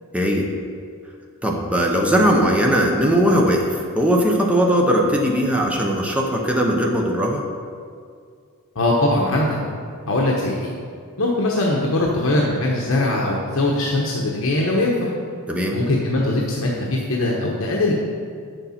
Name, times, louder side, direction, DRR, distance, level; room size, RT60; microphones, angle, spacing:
voice 1, 0.1-0.5 1.4-7.4 15.5-15.8, equal, 5° right, 0 dB, 0.9 m, -19 dB
voice 2, 8.7-9.6 10.1-10.7 11.2-15.1 15.7-17.9, left 2 dB, 65° left, -3 dB, 1.1 m, -21 dB
8.6 x 6.8 x 5.8 m, 2.2 s
head